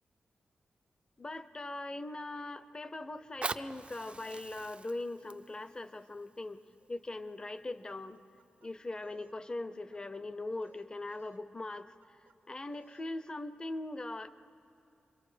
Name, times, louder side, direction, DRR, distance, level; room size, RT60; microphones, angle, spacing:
voice 1, 1.2-6.6 6.9-8.2 8.6-14.3, left 2 dB, 25° left, 12 dB, 0.6 m, -41 dB
Fire, 3.2-8.1 8.8-8.9, right 4 dB, 35° right, 0.5 m, -44 dB
sound 1, 8.1-9.4 9.7-10.2 10.5-11.5 11.8-12.4 12.7-13.1, right 5 dB, 75° right, 1.2 m, -65 dB
27.5 x 22.5 x 5.0 m, 2.6 s
wide cardioid pair, 125°, 3 cm